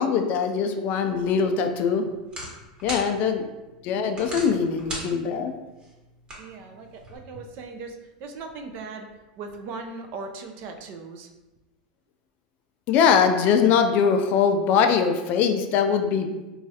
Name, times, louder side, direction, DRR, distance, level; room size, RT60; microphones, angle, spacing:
voice 1, 0.0-2.0 2.8-3.5 3.8-5.5 12.9-16.4, left 6 dB, 45° left, 7 dB, 0.3 m, -22 dB
sound 1, 1.1-7.2, right 1 dB, 25° right, 1.0 m, -41 dB
voice 2, 3.1-3.4 6.4-9.1 9.4-11.3, right 4 dB, 50° right, 5 dB, 0.4 m, -39 dB
3.1 x 2.3 x 2.7 m, 1.1 s
supercardioid pair, 125°, 4 cm